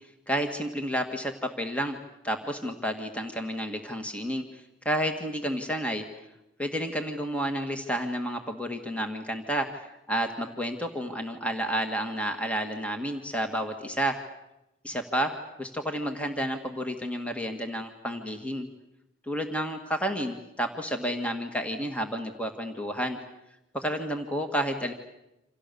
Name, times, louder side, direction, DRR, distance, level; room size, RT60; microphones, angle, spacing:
voice 1, 0.3-2.0 2.2-6.1 6.6-14.2 14.8-18.7 19.3-23.2 23.7-24.9, equal, 5° left, 5 dB, 1.8 m, -31 dB
29.0 x 27.0 x 7.0 m, 0.92 s
head